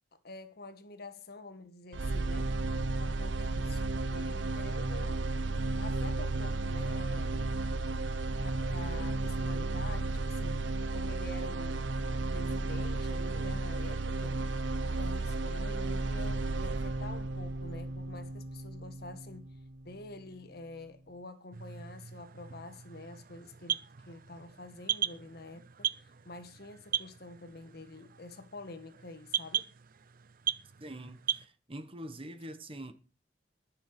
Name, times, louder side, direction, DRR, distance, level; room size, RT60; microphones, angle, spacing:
voice 1, 0.2-2.5 3.0-5.4 5.8-7.5 8.4-14.4 14.8-19.5 19.9-29.7, left 2 dB, 60° left, 1.6 m, -48 dB
sound 1, 1.9-19.9, right 2 dB, 85° right, 0.8 m, -33 dB
sound 2, 21.5-31.5, right 10 dB, 50° right, 0.6 m, -38 dB
voice 2, 30.8-32.9, right 1 dB, 30° right, 1.3 m, -44 dB
19.5 x 6.9 x 4.9 m
head